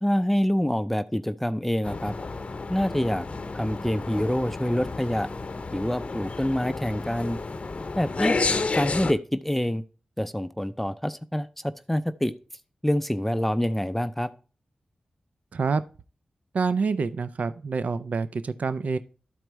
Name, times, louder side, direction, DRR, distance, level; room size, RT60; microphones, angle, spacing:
voice 1, 0.0-2.1 2.7-3.3 3.5-5.3 5.7-7.4 8.0-8.4 8.7-9.8 10.2-12.3 12.8-14.3, equal, 5° left, 11 dB, 0.5 m, -26 dB
sound 1, 1.8-9.1, left 3 dB, 55° left, 0.6 m, -31 dB
voice 2, 16.5-19.0, right 4 dB, 70° right, 13 dB, 0.4 m, -27 dB
12.5 x 4.5 x 3.1 m, 0.36 s
cardioid pair, 40°, 3 cm